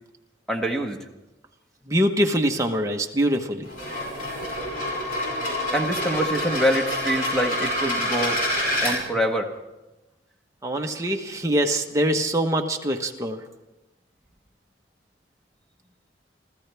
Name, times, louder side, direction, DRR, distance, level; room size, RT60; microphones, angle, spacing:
voice 1, 0.5-1.0 5.7-8.4 8.8-9.5, equal, 5° left, 2 dB, 1.5 m, -25 dB
voice 2, 1.8-3.7 10.6-13.4, equal, 15° right, 2 dB, 1.2 m, -24 dB
sound 1, 3.6-8.9, left 1 dB, 50° left, 6.5 m, -27 dB
28.0 x 15.0 x 3.5 m, 1.0 s
head